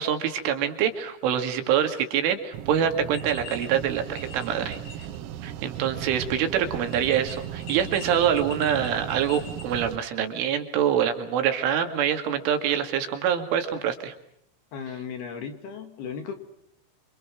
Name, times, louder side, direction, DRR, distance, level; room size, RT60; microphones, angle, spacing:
voice 1, 0.0-4.8 5.4-14.1, right 9 dB, 70° right, 6 dB, 4.6 m, -25 dB
sound 1, 2.5-10.0, right 11 dB, 90° right, 4.1 m, -37 dB
sound 2, 3.1-3.7 3.9-5.2 5.5-5.6 6.8-9.6, left 5 dB, 75° left, 7.4 m, -43 dB
voice 2, 14.7-16.4, left 6 dB, 55° left, 7 dB, 3.7 m, -36 dB
28.0 x 27.5 x 6.1 m, 0.71 s
omnidirectional pair, 6.0 m